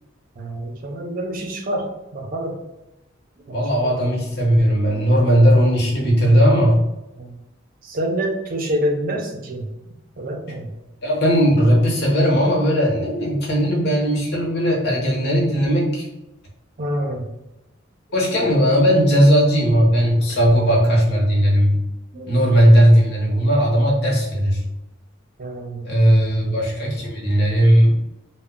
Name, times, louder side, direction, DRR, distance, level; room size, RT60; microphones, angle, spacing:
voice 1, 0.4-1.9 2.1-2.5 3.5-4.0 4.8-5.6 7.2-7.3 7.8-9.7 10.2-10.7 16.8-17.3 18.9-19.0 20.2-20.4 22.1-22.5 23.3-23.5 25.4-26.2 27.1-27.4, equal, 45° right, 2 dB, 0.5 m, -28 dB
voice 2, 3.5-6.8 11.0-16.1 18.1-21.8 22.3-24.6 25.8-27.9, equal, 55° left, -2 dB, 0.8 m, -17 dB
2.1 x 2.1 x 3.6 m, 0.93 s
head